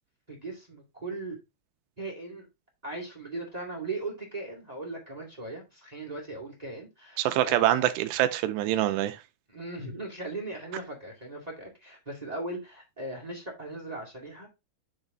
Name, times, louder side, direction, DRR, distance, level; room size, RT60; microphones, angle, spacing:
voice 1, 0.3-1.4 2.0-2.4 2.8-7.9 9.5-14.5, right 2 dB, 25° right, 0.8 m, -38 dB
voice 2, 7.2-9.2, right 13 dB, 85° right, 2.7 m, -25 dB
9.1 x 4.0 x 3.7 m
omnidirectional pair, 5.0 m